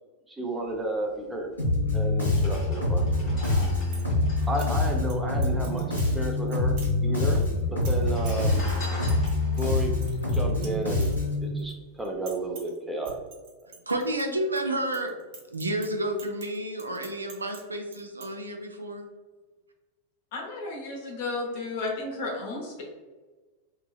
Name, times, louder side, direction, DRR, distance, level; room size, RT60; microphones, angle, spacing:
voice 1, 0.3-1.5 1.9-3.3 4.5-8.7 9.6-9.9 10.3-11.1 11.4-13.2 13.6-13.7, right 2 dB, 10° right, 0 dB, 0.5 m, -32 dB
Bass guitar, 1.6-11.5, left 2 dB, 85° left, 1.1 m, -25 dB
sound 1, 1.6-1.7 2.3-6.0 6.2-6.3 6.5-7.2 7.9-11.3 11.8-12.0, left 1 dB, 30° left, 1.2 m, -43 dB
sound 2, 3.8-4.1 4.4-5.1 5.4-6.1 6.5-6.9 7.4-11.7 12.0-12.8 13.1-14.6 14.9-17.6 17.9-18.3, right 4 dB, 45° right, 0.7 m, -46 dB
voice 2, 13.9-15.2 15.5-19.1, right 1 dB, 80° right, 4 dB, 0.3 m, -30 dB
voice 3, 20.3-22.8, left 2 dB, 50° left, 0 dB, 0.8 m, -33 dB
2.8 x 2.7 x 2.3 m, 1.3 s
figure-of-eight pair, 90°, 0 cm